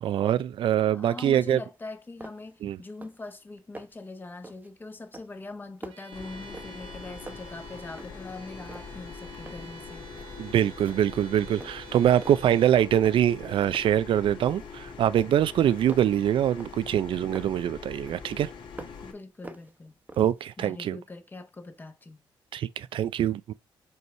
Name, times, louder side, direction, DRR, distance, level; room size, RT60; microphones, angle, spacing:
voice 1, 0.0-1.6 2.6-2.8 10.4-18.5 20.2-21.0 22.5-23.5, right 10 dB, 65° right, 0.4 m, -24 dB
voice 2, 0.9-10.1 19.0-20.0 20.6-22.2, left 3 dB, 20° left, 1.1 m, -42 dB
sound 1, 1.7-1.8 2.2-2.6 2.9-3.3 3.6-4.1 4.4-4.8 5.1-7.0 7.3-8.3 8.6-9.8 10.2-10.4 10.8-11.3 11.6-12.5 13.0-13.4 13.7-14.8 15.1-17.6 18.1-19.1 19.4-20.5, right 2 dB, 15° right, 1.0 m, -46 dB
Bowed string instrument, 5.9-12.9, right 7 dB, 85° right, 1.7 m, -50 dB
sound 2, 6.1-19.1, left 5 dB, 65° left, 1.9 m, -43 dB
5.3 x 4.7 x 5.5 m
cardioid pair, 130°, 9 cm